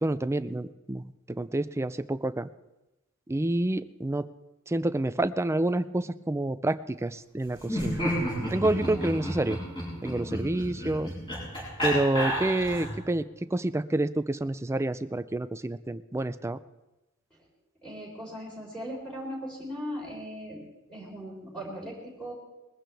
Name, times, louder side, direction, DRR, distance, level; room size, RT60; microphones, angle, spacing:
voice 1, 0.0-2.5 3.3-4.3 4.7-8.0 8.5-9.6 10.0-11.1 11.8-16.6, right 2 dB, 15° right, 12 dB, 0.4 m, -28 dB
Laughter, 7.6-13.0, equal, 25° left, 7.5 m, -31 dB
voice 2, 8.8-9.1 10.0-10.4 17.8-20.6 20.9-22.3, equal, 5° left, -5 dB, 4.0 m, -39 dB
21.0 x 15.0 x 3.4 m, 0.99 s
head